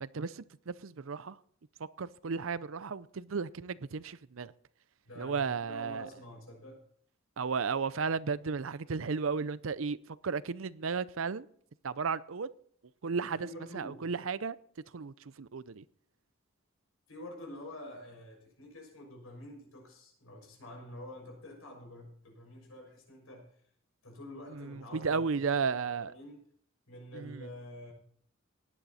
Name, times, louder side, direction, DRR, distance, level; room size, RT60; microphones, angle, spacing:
voice 1, 0.0-1.4 2.0-4.5 5.2-6.1 7.4-11.5 11.8-12.5 13.0-13.4 13.7-14.6 14.9-15.8 24.5-26.1 27.1-27.5, right 5 dB, 70° right, 0.6 m, -34 dB
voice 2, 5.0-6.8 13.3-14.1 17.1-23.5 24.0-26.5 26.9-27.9, left 1 dB, 85° left, 6.6 m, -48 dB
17.5 x 10.5 x 4.2 m
head